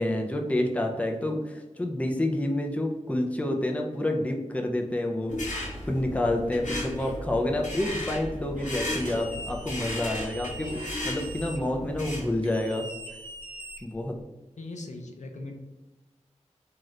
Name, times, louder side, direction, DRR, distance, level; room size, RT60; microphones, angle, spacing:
voice 1, 0.0-5.3 5.9-10.8 11.0-12.9 13.8-14.1, left 1 dB, 10° left, 2 dB, 0.4 m, -28 dB
sound 1, 5.3-12.4, left 1 dB, 85° left, 1.1 m, -35 dB
sound 2, 7.0-7.2 8.6-8.7 9.0-9.3 10.6-11.3, equal, 85° right, 0.8 m, -42 dB
sound 3, 8.9-11.6 12.4-14.2, right 1 dB, 40° right, 0.9 m, -42 dB
voice 2, 14.6-15.6, left 2 dB, 70° left, 2 dB, 0.5 m, -39 dB
2.8 x 2.4 x 3.1 m, 1.1 s
wide cardioid pair, 75°, 13 cm